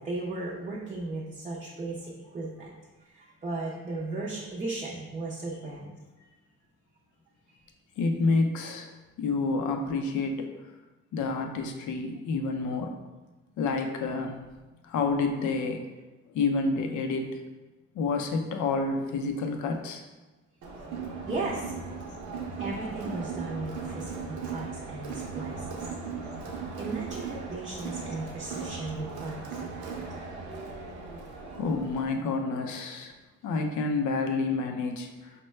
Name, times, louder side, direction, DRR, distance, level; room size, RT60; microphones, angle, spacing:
voice 1, 0.0-2.7 3.0-6.3 7.5-7.6 21.3-21.7 22.6-25.8 26.8-29.9 30.1-30.3 31.4-31.6, right 2 dB, 25° right, -5 dB, 0.5 m, -36 dB
voice 2, 8.0-8.9 9.2-10.5 11.1-12.9 13.6-14.3 14.8-15.9 16.3-17.3 17.9-20.0 31.6-33.1 33.4-35.3, left 3 dB, 75° left, 4 dB, 0.5 m, -28 dB
Crowd, 20.6-32.2, right 5 dB, 75° right, 0.7 m, -38 dB
4.3 x 2.2 x 3.1 m, 1.2 s
cardioid pair, 90°, 30 cm